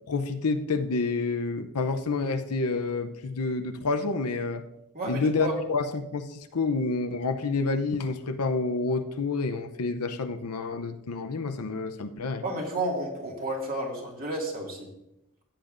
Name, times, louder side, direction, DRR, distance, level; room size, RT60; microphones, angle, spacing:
voice 1, 0.1-4.6 5.1-12.4, left 3 dB, 90° left, 8 dB, 0.7 m, -28 dB
voice 2, 4.9-5.6 12.4-14.9, right 1 dB, 40° right, -1 dB, 2.2 m, -31 dB
14.5 x 9.0 x 2.6 m, 0.86 s
head